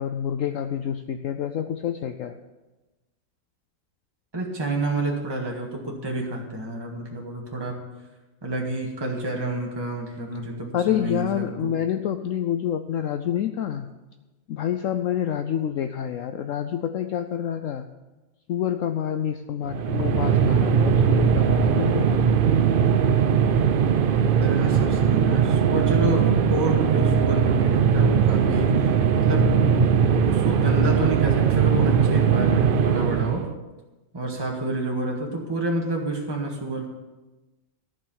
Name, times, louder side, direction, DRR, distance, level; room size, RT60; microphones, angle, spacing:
voice 1, 0.0-2.4 10.7-13.9 14.5-17.9 18.5-22.3, left 9 dB, 65° left, 8 dB, 0.9 m, -28 dB
voice 2, 4.3-7.8 8.4-11.4 24.4-29.5 30.2-33.4 34.1-36.9, right 2 dB, 15° right, -1 dB, 1.7 m, -29 dB
sound 1, 19.7-33.5, right 7 dB, 60° right, 0.5 m, -20 dB
14.0 x 5.5 x 8.7 m, 1.1 s
omnidirectional pair, 1.6 m